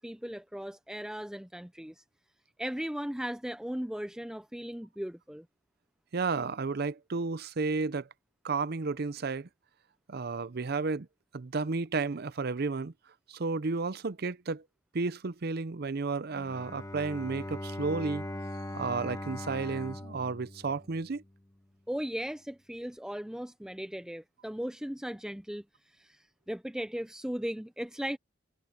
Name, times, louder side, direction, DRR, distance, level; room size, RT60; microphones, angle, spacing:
voice 1, 0.0-2.0 2.6-5.5 21.9-28.2, equal, 5° right, 0.5 m, -37 dB
voice 2, 6.1-8.1 8.4-9.5 10.1-11.1 11.3-12.9 13.3-14.6 14.9-18.3 18.7-21.2, right 4 dB, 55° right, 0.6 m, -32 dB
Bowed string instrument, 16.3-21.4, left 1 dB, 15° left, 1.7 m, -40 dB
head